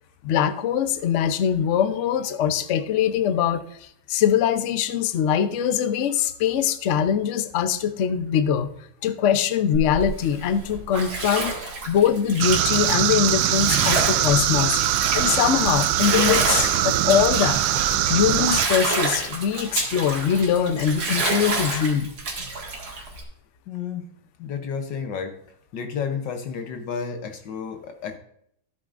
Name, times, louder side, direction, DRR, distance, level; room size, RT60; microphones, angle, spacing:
voice 1, 0.2-8.7 9.0-17.6 18.1-22.1, left 8 dB, 85° left, 10 dB, 0.6 m, -22 dB
Bathtub (filling or washing), 9.7-23.2, right 3 dB, 50° right, 2.4 m, -29 dB
sound 1, 12.4-18.7, right 13 dB, 90° right, 1.4 m, -22 dB
voice 2, 23.7-24.1 24.4-25.4 25.7-28.2, left 6 dB, 65° left, 6 dB, 1.5 m, -31 dB
13.5 x 8.4 x 2.5 m, 0.69 s
omnidirectional pair, 2.2 m